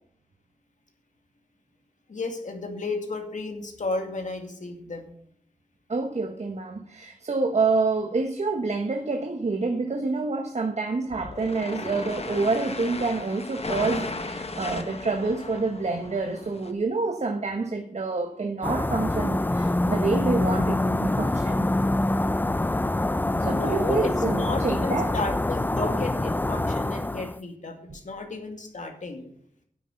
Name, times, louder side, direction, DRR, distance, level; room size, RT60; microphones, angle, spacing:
voice 1, 2.1-5.1 23.3-29.3, left 3 dB, 70° left, 4 dB, 2.3 m, -33 dB
voice 2, 5.9-21.7 23.4-25.1, right 3 dB, 55° right, 5 dB, 1.2 m, -27 dB
sound 1, 11.1-16.7, left 3 dB, 50° left, 1.4 m, -35 dB
sound 2, 18.6-27.4, left 2 dB, 15° left, 0.5 m, -25 dB
10.0 x 8.6 x 6.5 m, 0.66 s
cardioid pair, 45°, 14 cm